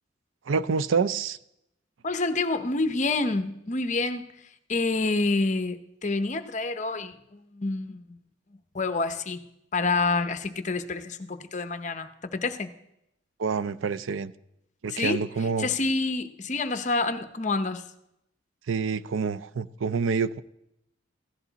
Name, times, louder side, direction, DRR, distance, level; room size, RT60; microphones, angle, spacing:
voice 1, 0.5-1.4 13.4-14.3 14.8-15.7 18.7-20.4, right 5 dB, 90° right, 14 dB, 0.5 m, -27 dB
voice 2, 2.0-4.3 4.7-8.2 8.7-9.4 9.7-12.7 14.9-15.2 15.6-17.9, left 3 dB, 40° left, 9 dB, 0.8 m, -28 dB
16.0 x 13.5 x 4.0 m, 0.82 s
head